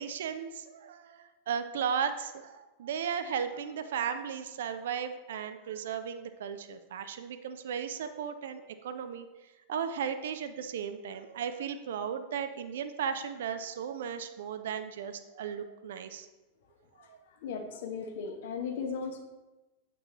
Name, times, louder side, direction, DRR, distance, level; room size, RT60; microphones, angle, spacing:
voice 1, 0.0-9.3 9.7-16.3 17.1-17.2, right 7 dB, 60° right, 10 dB, 0.5 m, -35 dB
voice 2, 17.4-19.2, left 5 dB, 55° left, 4 dB, 1.0 m, -36 dB
8.7 x 6.0 x 3.0 m, 1.1 s
figure-of-eight pair, 90°, 0 cm